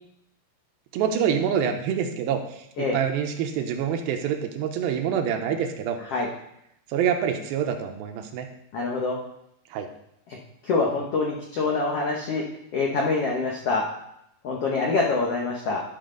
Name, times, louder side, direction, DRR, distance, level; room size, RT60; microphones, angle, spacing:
voice 1, 0.9-2.4 2.8-6.0 6.9-8.5 9.7-9.9, right 8 dB, 80° right, 5 dB, 2.5 m, -26 dB
voice 2, 8.7-9.2 10.3-10.4 10.6-12.4 12.7-13.8 14.4-15.8, left 3 dB, 85° left, -1 dB, 1.3 m, -25 dB
12.0 x 6.0 x 3.8 m, 0.77 s
omnidirectional pair, 4.4 m